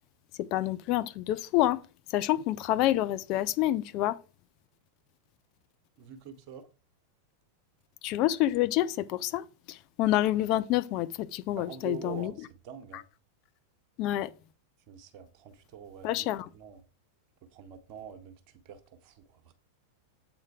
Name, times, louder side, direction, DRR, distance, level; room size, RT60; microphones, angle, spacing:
voice 1, 0.4-1.8 2.1-4.2 8.0-12.3 14.0-14.3 16.0-16.5, left 14 dB, 40° left, 0.4 m, -28 dB
voice 2, 6.0-6.7 11.6-13.1 14.9-16.3 16.5-16.8 17.5-18.4 18.6-19.5, right 8 dB, 40° right, 1.0 m, -45 dB
7.8 x 4.3 x 4.7 m
figure-of-eight pair, 90°, 0 cm